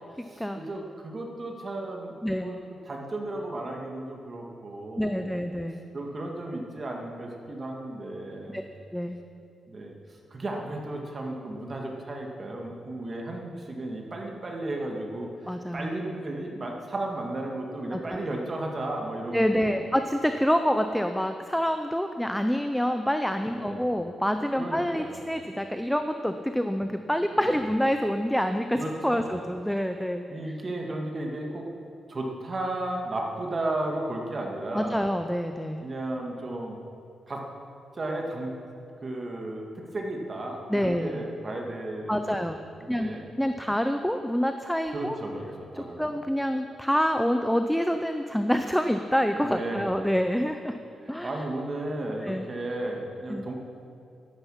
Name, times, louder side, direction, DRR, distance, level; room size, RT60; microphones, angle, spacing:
voice 1, 0.2-2.6 2.8-5.3 5.9-8.7 9.7-9.9 10.3-19.9 23.5-23.9 24.6-25.4 27.4-27.6 28.7-29.4 30.3-31.6 32.1-35.1 35.8-36.8 37.3-37.4 37.9-38.6 39.0-39.7 39.9-42.5 42.8-43.2 44.9-45.5 45.7-46.2 49.4-49.9 51.0-53.5, right 1 dB, 35° right, 0 dB, 2.0 m, -34 dB
voice 2, 5.0-5.8 8.5-8.6 8.9-9.2 15.5-15.9 17.9-18.2 19.3-30.5 34.7-35.8 40.7-41.2 42.1-42.6 42.9-43.1 43.4-45.2 45.7-50.8 51.1-51.3 52.2-52.4 53.3-53.4, equal, ahead, 7 dB, 0.5 m, -27 dB
13.5 x 11.5 x 5.7 m, 2.6 s
cardioid pair, 120°, 0 cm